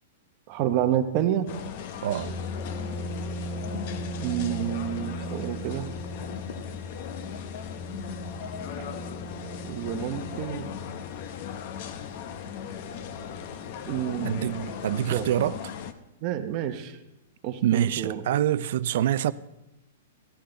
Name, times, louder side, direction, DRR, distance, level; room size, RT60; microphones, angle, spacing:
voice 1, 0.5-1.5 4.2-5.9 8.7-8.8 9.6-10.7 13.9-14.7 15.1-15.3 16.2-17.0 17.4-18.2, right 11 dB, 35° right, 0.9 m, -29 dB
sound 1, 1.5-15.9, left 8 dB, 45° left, 0.7 m, -38 dB
voice 2, 2.0-2.3 14.2-15.6 17.6-19.3, right 11 dB, 55° right, 0.4 m, -25 dB
sound 2, 2.2-15.5, equal, 5° left, 2.0 m, -39 dB
12.5 x 11.5 x 3.9 m
hypercardioid pair, 165°, 0 cm